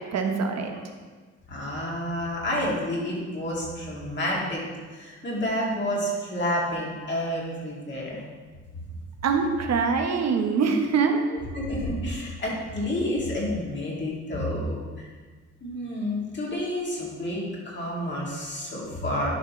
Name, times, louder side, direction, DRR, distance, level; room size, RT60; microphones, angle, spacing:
voice 1, 0.1-0.7 9.2-11.2, right 5 dB, 60° right, 4 dB, 1.0 m, -24 dB
voice 2, 1.5-4.6 4.9-8.2 11.5-15.1 15.6-19.3, left 1 dB, 35° left, -4 dB, 2.4 m, -29 dB
10.5 x 5.2 x 3.1 m, 1.4 s
cardioid pair, 90°, 30 cm